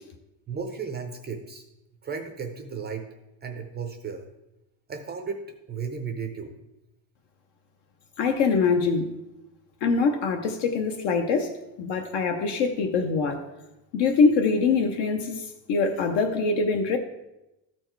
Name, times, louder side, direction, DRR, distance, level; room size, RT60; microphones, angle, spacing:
voice 1, 0.5-1.6 2.0-3.1 3.4-4.3 4.9-6.5, right 5 dB, 20° right, 5 dB, 0.5 m, -34 dB
voice 2, 8.2-9.1 9.8-13.4 13.9-17.0, left 4 dB, 60° left, 5 dB, 0.9 m, -24 dB
13.5 x 4.5 x 4.5 m, 0.94 s
cardioid pair, 165°, 47 cm